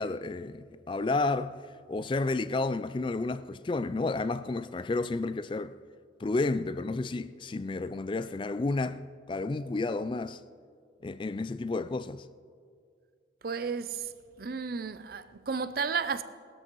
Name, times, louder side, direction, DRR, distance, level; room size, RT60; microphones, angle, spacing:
voice 1, 0.0-1.6 1.9-5.8 6.2-9.0 9.3-10.4 11.0-12.2, left 3 dB, 25° left, 0.3 m, -31 dB
voice 2, 13.4-14.1 14.4-16.2, right 5 dB, 50° right, 0.5 m, -33 dB
19.5 x 13.0 x 3.1 m
head